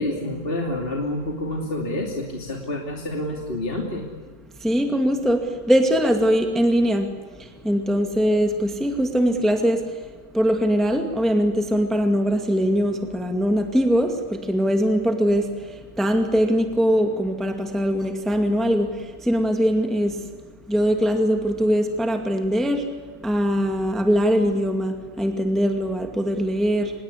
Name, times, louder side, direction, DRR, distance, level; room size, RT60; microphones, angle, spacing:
voice 1, 0.0-4.1, left 1 dB, 30° left, 1 dB, 2.9 m, -28 dB
voice 2, 4.6-7.1 7.6-9.8 10.3-15.5 16.0-18.9 19.3-20.1 20.7-22.8 23.2-26.9, equal, ahead, 5 dB, 2.1 m, -21 dB
26.0 x 21.5 x 8.4 m, 1.5 s
omnidirectional pair, 1.9 m